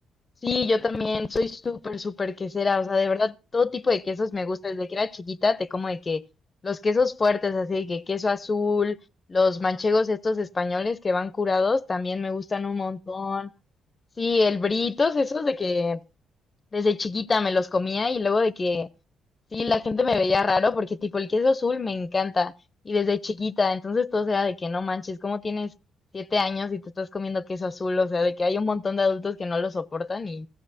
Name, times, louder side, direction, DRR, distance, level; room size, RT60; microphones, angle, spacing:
voice 1, 0.4-6.2 6.6-9.0 9.3-13.5 14.2-16.0 16.7-18.9 19.5-22.5 22.8-25.7 26.1-30.5, left 4 dB, 30° left, 0.6 m, -25 dB
16.0 x 15.5 x 2.7 m
cardioid pair, 90°, 0 cm